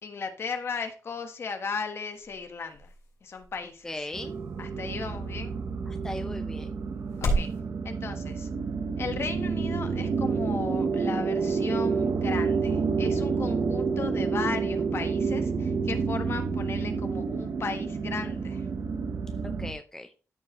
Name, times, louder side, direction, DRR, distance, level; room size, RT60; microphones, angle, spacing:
voice 1, 0.0-2.9 3.2-3.9 4.6-5.6 7.2-7.5 7.8-8.5 9.0-18.7, left 5 dB, 50° left, 7 dB, 1.3 m, -36 dB
sound 1, 1.3-7.6, right 1 dB, 90° left, 3.4 m, -36 dB
voice 2, 3.8-4.3 5.9-6.8 19.4-20.1, left 1 dB, 10° left, 7 dB, 0.5 m, -38 dB
sound 2, 4.1-19.7, right 5 dB, 55° right, 0.9 m, -29 dB
13.0 x 4.7 x 3.0 m, 0.34 s
wide cardioid pair, 135°, 6 cm